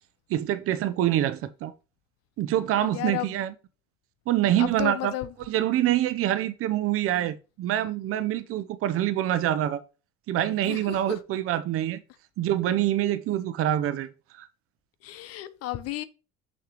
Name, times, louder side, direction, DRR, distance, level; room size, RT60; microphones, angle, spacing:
voice 1, 0.3-1.7 2.4-3.5 4.3-5.1 5.5-9.8 10.3-12.0 12.4-14.1 14.3-14.5, right 12 dB, 50° right, 0.8 m, -25 dB
voice 2, 2.8-3.3 4.6-5.3 10.7-11.2 15.0-16.0, left 14 dB, 55° left, 0.8 m, -33 dB
6.7 x 6.6 x 3.0 m
cardioid pair, 175°, 29 cm